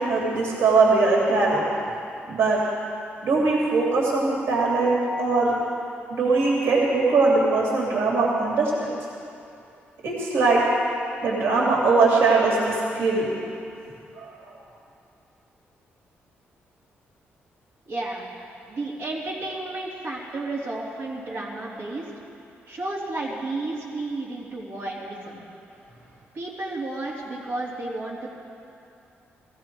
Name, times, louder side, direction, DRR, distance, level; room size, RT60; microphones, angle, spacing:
voice 1, 0.0-1.7 2.3-2.6 3.2-5.5 6.1-8.9 10.0-10.6 11.2-13.3 14.2-14.3, right 3 dB, 70° right, -3 dB, 2.6 m, -21 dB
voice 2, 17.8-18.3 18.7-22.1 22.7-25.5 26.3-28.3, right 2 dB, 45° right, -6 dB, 3.0 m, -32 dB
18.5 x 15.5 x 4.6 m, 2.6 s
wide cardioid pair, 165°, 4 cm